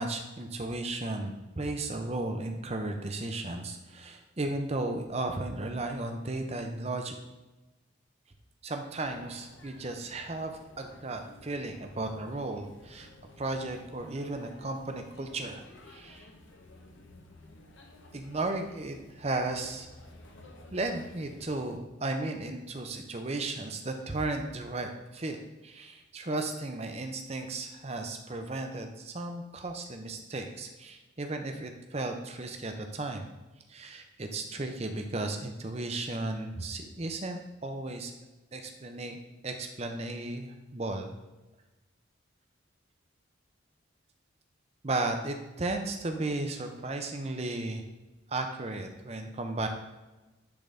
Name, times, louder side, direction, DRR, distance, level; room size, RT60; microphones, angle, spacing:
voice 1, 0.0-7.2 8.6-13.1 13.4-16.3 18.1-19.9 20.7-25.4 25.6-33.3 33.7-38.1 38.5-39.2 39.4-41.1 44.8-47.8 48.3-49.7, right 2 dB, 30° right, 5 dB, 0.7 m, -35 dB
sound 1, 8.9-21.8, left 1 dB, 70° left, 1.0 m, -53 dB
10.5 x 3.9 x 3.4 m, 1.1 s
head